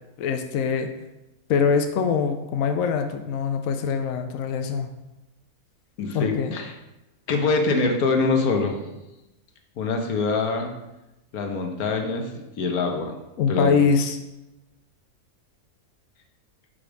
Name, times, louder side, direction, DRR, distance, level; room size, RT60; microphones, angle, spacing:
voice 1, 0.2-0.9 1.5-4.9 6.1-6.6 13.4-14.2, left 6 dB, 70° left, 6 dB, 1.0 m, -23 dB
voice 2, 6.0-6.7 7.3-8.9 9.8-10.7 11.3-13.1 13.5-13.7, left 3 dB, 85° left, 4 dB, 1.5 m, -24 dB
5.7 x 5.0 x 6.0 m, 0.97 s
omnidirectional pair, 1.5 m